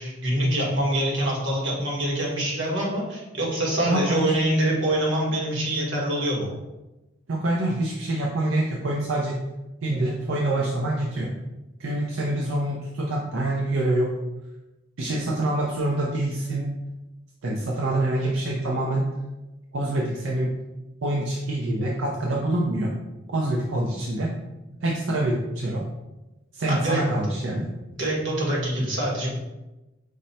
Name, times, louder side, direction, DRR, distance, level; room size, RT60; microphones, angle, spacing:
voice 1, 0.0-6.5 26.7-27.0 28.0-29.3, right 1 dB, 65° right, -3 dB, 1.3 m, -25 dB
voice 2, 3.9-4.2 7.3-9.4 9.8-11.3 11.8-14.1 15.0-16.7 17.4-19.1 19.7-20.5 21.0-23.0 23.3-24.3 24.8-25.9 26.5-27.7, right 1 dB, 90° right, -2 dB, 0.5 m, -25 dB
5.0 x 2.1 x 4.1 m, 1.0 s
head